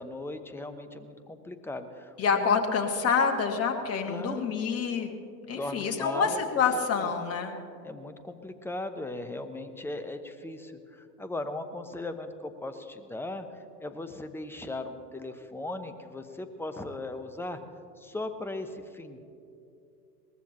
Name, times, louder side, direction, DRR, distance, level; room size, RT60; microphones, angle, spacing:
voice 1, 0.0-2.6 4.1-4.5 5.5-6.4 7.0-7.1 7.8-17.6 18.0-19.2, left 2 dB, 5° left, 8 dB, 0.9 m, -38 dB
voice 2, 2.2-5.1 5.5-7.5, left 6 dB, 30° left, 3 dB, 1.9 m, -27 dB
22.5 x 19.5 x 3.0 m, 2.6 s
figure-of-eight pair, 90°, 49 cm